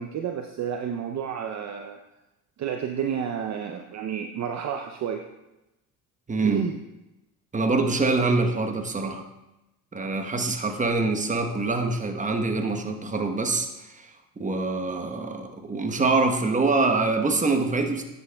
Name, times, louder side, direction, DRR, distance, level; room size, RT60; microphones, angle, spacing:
voice 1, 0.0-2.0 2.6-5.2 6.4-6.8, right 8 dB, 40° right, 4 dB, 0.7 m, -30 dB
voice 2, 6.3-6.6 7.5-9.2 9.9-14.1 14.4-18.0, right 3 dB, 15° right, 5 dB, 1.1 m, -25 dB
9.6 x 8.1 x 2.3 m, 0.95 s
hypercardioid pair, 75°, 43 cm